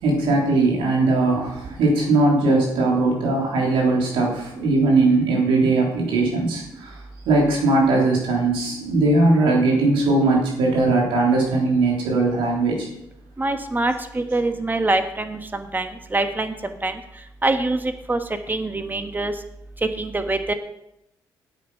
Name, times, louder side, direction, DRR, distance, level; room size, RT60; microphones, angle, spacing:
voice 1, 0.0-6.9 7.3-12.9, right 2 dB, 80° right, -2 dB, 3.7 m, -19 dB
voice 2, 13.4-16.9 17.4-17.8 18.1-18.2 18.5-19.3 19.8-20.5, right 2 dB, 20° right, 7 dB, 1.3 m, -24 dB
9.9 x 8.5 x 5.7 m, 0.84 s
supercardioid pair, 65°, 9 cm